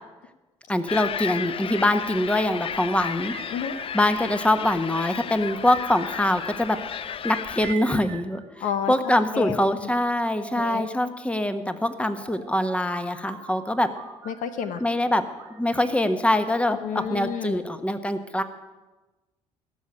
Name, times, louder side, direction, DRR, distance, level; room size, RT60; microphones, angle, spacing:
voice 1, 0.7-3.3 3.9-13.9 14.8-15.2 15.6-18.4, left 1 dB, 10° left, 9 dB, 1.4 m, -24 dB
sound 1, 0.9-7.7, left 8 dB, 35° left, 0.5 m, -34 dB
sound 2, 3.2-4.8 5.4-6.9 7.6-9.2 9.9-11.1 12.2-14.9 15.4-17.2, right 8 dB, 80° right, 1.4 m, -45 dB
voice 2, 8.6-8.9 9.3-9.7 10.5-10.9 14.3-14.8 16.8-17.6, left 8 dB, 60° left, 10 dB, 1.0 m, -30 dB
18.0 x 7.2 x 8.9 m, 1.2 s
hypercardioid pair, 50°, 15 cm